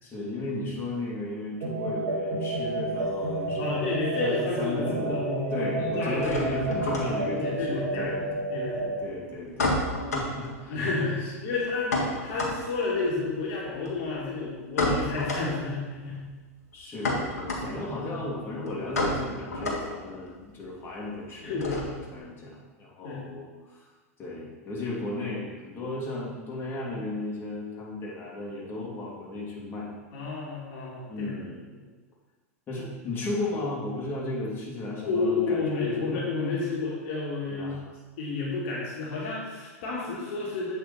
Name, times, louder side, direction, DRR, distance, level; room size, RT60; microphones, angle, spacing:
voice 1, 0.0-3.9 4.2-4.3 4.6-8.2 8.6-9.8 10.1-10.8 11.2-11.3 16.7-23.9 24.2-29.9 31.1-31.6 32.7-36.2 37.5-37.9, left 2 dB, 25° left, -5 dB, 2.7 m, -35 dB
sound 1, 1.6-9.0, right 2 dB, 75° right, 1.8 m, -30 dB
sound 2, 2.3-4.0 4.2-4.9 5.2-22.2, left 2 dB, 80° left, 1.8 m, -32 dB
voice 2, 3.6-6.3 7.3-8.2 8.5-9.0 9.8-9.9 10.7-16.3 21.4-22.0 23.0-23.2 30.1-31.3 35.0-37.8 38.2-40.7, left 3 dB, 60° left, -5 dB, 2.3 m, -31 dB
8.4 x 5.4 x 4.3 m, 1.3 s
hypercardioid pair, 100°, 8 cm